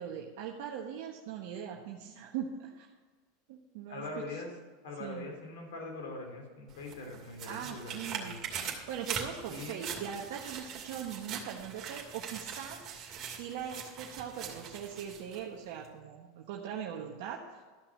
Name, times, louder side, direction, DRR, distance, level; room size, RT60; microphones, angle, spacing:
voice 1, 0.0-2.9 3.5-4.0 5.0-5.2 7.4-8.3 8.7-12.8 13.4-17.6, right 8 dB, 65° right, -1 dB, 1.2 m, -41 dB
voice 2, 3.9-4.5 4.8-8.4 9.5-9.8, left 2 dB, 70° left, 0 dB, 3.4 m, -42 dB
sound 1, 6.7-15.4 15.8-15.9, right 7 dB, 40° right, 2.5 m, -42 dB
13.5 x 6.0 x 6.1 m, 1.4 s
hypercardioid pair, 95°, 0 cm